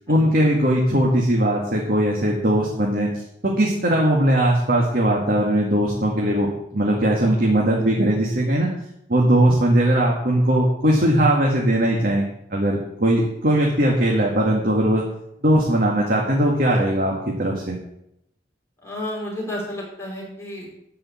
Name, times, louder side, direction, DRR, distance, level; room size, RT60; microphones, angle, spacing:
voice 1, 0.1-3.1 3.4-6.5 6.7-8.7 9.1-15.0 15.4-17.8, right 1 dB, 55° right, -2 dB, 2.1 m, -19 dB
voice 2, 18.8-20.8, left 1 dB, 15° left, -4 dB, 4.9 m, -31 dB
13.0 x 5.5 x 8.6 m, 0.80 s
head